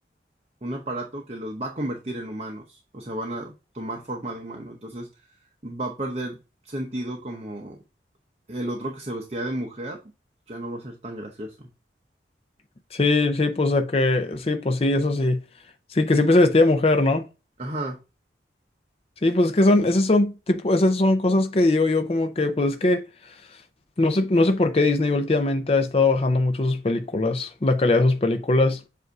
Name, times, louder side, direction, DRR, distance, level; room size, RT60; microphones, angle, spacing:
voice 1, 0.6-5.1 5.6-6.4 6.6-7.8 8.5-10.0 10.5-11.7 17.6-18.0, right 1 dB, 35° right, 0.8 m, -33 dB
voice 2, 12.9-15.4 15.9-17.3 19.2-23.0 24.0-28.8, left 2 dB, 35° left, 0.5 m, -20 dB
7.8 x 2.6 x 4.6 m
head